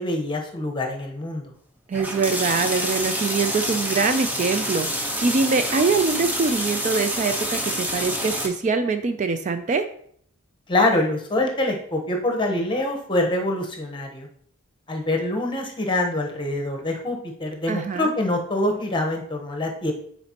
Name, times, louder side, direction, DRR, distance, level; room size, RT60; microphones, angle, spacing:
voice 1, 0.0-1.4 10.7-14.3 14.9-19.9, left 1 dB, 20° left, 2 dB, 1.0 m, -25 dB
sound 1, 1.9-8.5, equal, 10° right, 0.7 m, -27 dB
voice 2, 1.9-9.9 17.7-18.1, right 4 dB, 35° right, 9 dB, 0.3 m, -23 dB
8.7 x 4.2 x 2.8 m, 0.62 s
head